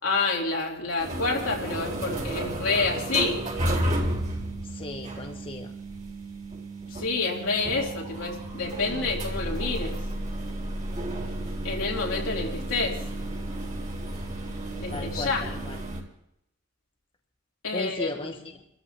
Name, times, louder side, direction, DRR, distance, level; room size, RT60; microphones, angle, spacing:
voice 1, 0.0-3.4 6.9-10.0 11.4-13.0 14.8-15.5 17.6-18.4, left 3 dB, 80° left, -2 dB, 3.1 m, -28 dB
sound 1, 1.0-16.0, right 1 dB, 40° right, 4.0 m, -32 dB
voice 2, 4.7-5.7 14.9-15.8 17.7-18.4, left 2 dB, 25° left, 2 dB, 1.0 m, -35 dB
28.5 x 14.0 x 2.9 m, 0.79 s
head